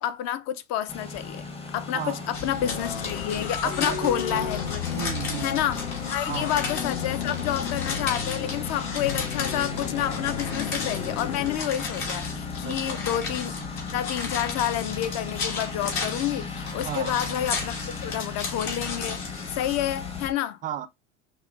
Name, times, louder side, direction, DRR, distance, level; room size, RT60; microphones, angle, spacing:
voice 1, 0.0-1.5 1.7-4.8 5.4-13.5 13.9-19.2 19.5-20.6, left 11 dB, 50° left, 0.5 m, -29 dB
Engine, 0.9-20.3, left 3 dB, 15° left, 0.7 m, -38 dB
voice 2, 1.9-2.3 3.6-4.6 4.9-5.6 6.3-6.6 12.6-13.0 16.8-17.2 20.6-20.9, right 10 dB, 25° right, 0.3 m, -34 dB
sound 1, 2.3-20.3, left 5 dB, 65° left, 1.7 m, -34 dB
sound 2, 2.6-11.5, left 8 dB, 90° left, 0.6 m, -34 dB
5.4 x 2.2 x 2.3 m
hypercardioid pair, 90°, 36 cm